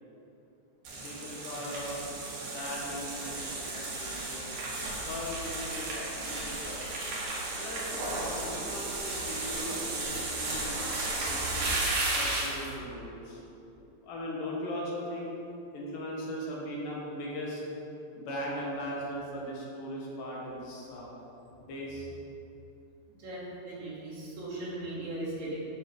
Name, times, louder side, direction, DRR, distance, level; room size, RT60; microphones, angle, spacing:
sound 1, 0.8-12.7, right 2 dB, 80° right, 3.3 m, -34 dB
voice 1, 1.0-2.0 2.4-4.5 5.1-6.8 7.6-11.3 12.1-13.4 14.0-15.3 15.7-17.6 18.2-21.1 21.6-22.1, equal, 75° left, -4 dB, 3.0 m, -39 dB
voice 2, 23.2-25.5, right 1 dB, 60° right, -7 dB, 3.3 m, -38 dB
9.6 x 5.7 x 5.2 m, 2.9 s
omnidirectional pair, 3.8 m